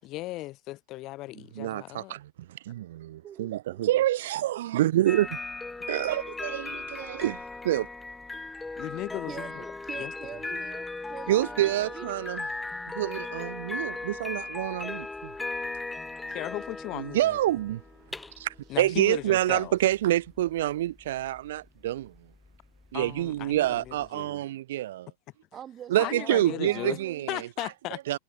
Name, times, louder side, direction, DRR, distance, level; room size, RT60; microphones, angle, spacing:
voice 1, 0.0-2.1 8.8-9.5 10.0-10.1 16.3-17.4 18.7-19.8 22.9-24.4 26.0-27.0 27.3-28.0, left 18 dB, 40° left, 7.6 m, -36 dB
voice 2, 1.6-2.2 2.6-5.3 5.9-7.9 11.3-12.4 12.9-15.3 17.0-17.8 18.4-22.1 22.9-25.1 25.9-27.5 28.1-28.2, right 14 dB, 55° right, 0.7 m, -27 dB
voice 3, 3.2-3.8 9.3-12.2 16.2-16.4 25.5-27.3, right 10 dB, 25° right, 7.4 m, -44 dB
sound 1, 5.1-24.1, left 3 dB, 10° left, 4.5 m, -38 dB
figure-of-eight pair, 90°, 0 cm